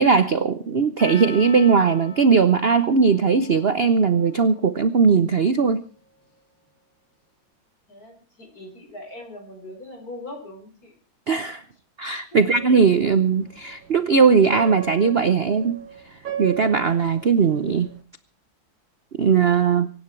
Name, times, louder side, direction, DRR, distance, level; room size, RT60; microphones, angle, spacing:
voice 1, 0.0-5.8 11.3-11.6 12.0-15.8 16.4-17.9 19.2-19.9, right 5 dB, 45° right, 12 dB, 0.8 m, -19 dB
Percussion, 1.0-5.3, left 3 dB, 80° left, 8.5 m, -42 dB
voice 2, 7.9-10.9 12.3-12.5, left 1 dB, 50° left, 4 dB, 5.5 m, -40 dB
sound 1, 12.5-18.0, right 8 dB, 85° right, 2.8 m, -36 dB
24.5 x 11.0 x 4.6 m, 0.40 s
omnidirectional pair, 2.1 m